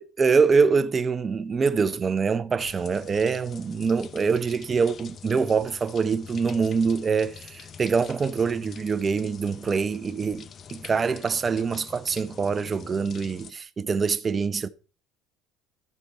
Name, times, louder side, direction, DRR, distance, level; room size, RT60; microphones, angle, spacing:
voice 1, 0.0-14.7, right 5 dB, 30° right, 0.7 m, -24 dB
sound 1, 2.6-13.5, left 6 dB, 40° left, 0.7 m, -45 dB
13.0 x 6.9 x 4.3 m
supercardioid pair, 110°, 0 cm